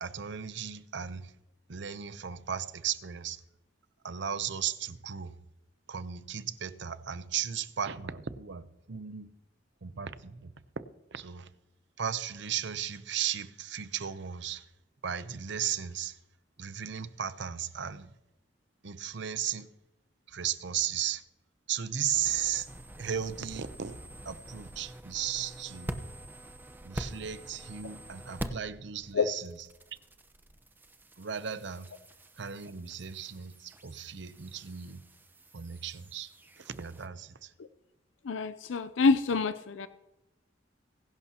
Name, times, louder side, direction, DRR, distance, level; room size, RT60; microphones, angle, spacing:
voice 1, 0.0-1.3 1.7-3.4 4.0-5.3 5.9-9.3 9.8-10.5 11.1-11.5 12.0-14.7 15.0-16.2 16.6-18.1 18.8-19.7 20.3-21.2 21.7-22.7 23.0-24.0 24.2-26.0 26.8-29.5 31.2-31.9 32.4-35.0 35.5-36.3 36.6-37.5, right 9 dB, 65° right, 0.7 m, -35 dB
sound 1, 22.1-28.7 29.0-37.1, right 1 dB, 10° right, 0.9 m, -45 dB
voice 2, 38.2-39.9, left 4 dB, 80° left, 0.5 m, -27 dB
22.0 x 11.5 x 2.9 m
head